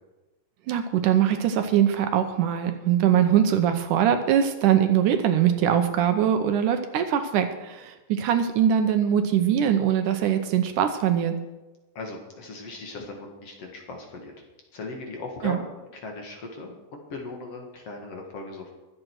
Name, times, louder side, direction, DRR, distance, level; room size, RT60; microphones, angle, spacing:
voice 1, 0.7-11.3 15.4-15.6, right 9 dB, 75° right, 7 dB, 2.3 m, -22 dB
voice 2, 12.0-14.3 14.7-15.7 15.9-18.7, left 3 dB, 50° left, 2 dB, 2.6 m, -38 dB
23.0 x 7.8 x 4.7 m, 1.1 s
omnidirectional pair, 3.9 m